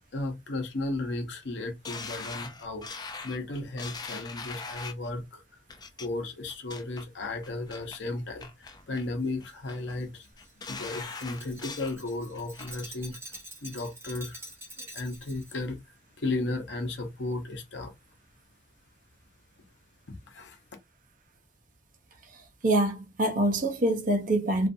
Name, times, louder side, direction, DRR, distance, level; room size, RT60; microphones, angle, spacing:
voice 1, 0.1-2.9 3.2-5.4 6.0-10.3 10.7-13.2 13.6-14.4 14.8-15.8 16.2-17.9 20.3-20.6, left 2 dB, 75° left, 0.8 m, -34 dB
sound 1, 1.8-5.1 5.7-6.1 6.5-7.0 7.4-8.0 8.4-9.1 9.4-9.9 10.4-12.0 12.3-12.9 13.3-13.4, left 4 dB, 20° left, 0.3 m, -41 dB
Glass, 9.2-15.6, right 1 dB, 15° right, 0.8 m, -47 dB
voice 2, 22.3-24.7, right 1 dB, 45° right, 0.7 m, -25 dB
2.5 x 2.4 x 2.6 m
head